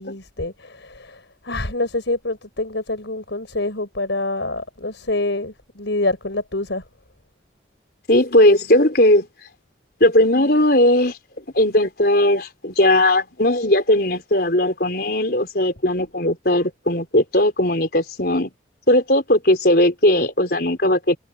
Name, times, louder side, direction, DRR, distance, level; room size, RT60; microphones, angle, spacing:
voice 1, 0.0-6.8, left 2 dB, 75° left, 5.1 m, -26 dB
voice 2, 8.1-9.3 10.0-11.1 11.5-18.5 18.9-21.2, left 1 dB, 55° left, 4.9 m, -17 dB
head